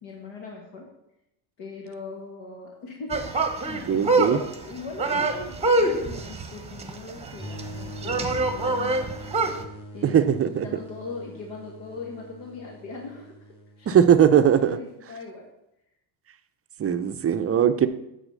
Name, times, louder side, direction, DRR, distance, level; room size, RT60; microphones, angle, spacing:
voice 1, 0.0-0.9 1.6-3.5 3.9-9.5 9.9-10.3 10.6-13.3 13.8-15.5, left 3 dB, 65° left, 0 dB, 1.9 m, -40 dB
sound 1, 3.1-9.6, right 2 dB, 15° right, 1.0 m, -25 dB
voice 2, 3.7-4.4 10.0-10.7 13.9-14.8 16.8-17.9, right 9 dB, 30° right, 10 dB, 0.6 m, -20 dB
sound 2, 7.4-14.0, right 1 dB, 10° left, 2.6 m, -42 dB
8.9 x 4.3 x 6.5 m, 0.84 s
cardioid pair, 110°, 48 cm